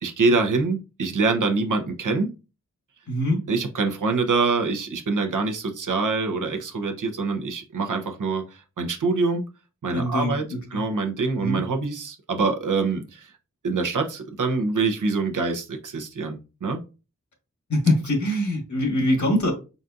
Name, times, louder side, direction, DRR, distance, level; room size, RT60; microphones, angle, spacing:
voice 1, 0.0-2.3 3.5-9.5 9.8-10.4 10.7-13.3 13.6-16.8, right 4 dB, 85° right, 4 dB, 0.8 m, -25 dB
voice 2, 3.1-3.4 9.9-10.8 11.4-11.6 17.7-19.5, left 1 dB, 65° left, 2 dB, 1.6 m, -23 dB
4.0 x 3.8 x 2.4 m, 0.31 s
cardioid pair, 50°, 31 cm